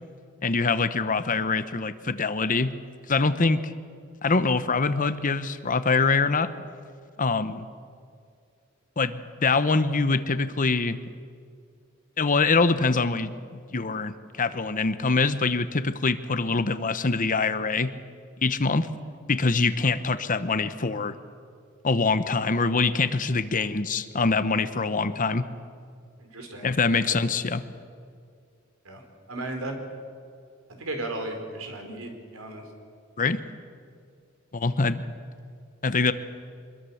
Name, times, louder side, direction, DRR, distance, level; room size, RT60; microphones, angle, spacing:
voice 1, 0.4-2.7 3.1-3.7 4.2-6.5 7.2-7.7 9.0-11.0 12.2-13.3 13.7-17.9 18.4-18.9 19.3-21.1 21.8-25.5 26.6-27.6 33.2-33.4 34.5-35.0 35.8-36.1, left 4 dB, 40° left, 12 dB, 1.0 m, -24 dB
voice 2, 26.2-26.7 27.1-27.2 28.8-29.0 29.3-29.8 30.7-32.6, right 2 dB, 90° right, 4 dB, 4.3 m, -35 dB
25.0 x 21.5 x 7.2 m, 2.2 s
head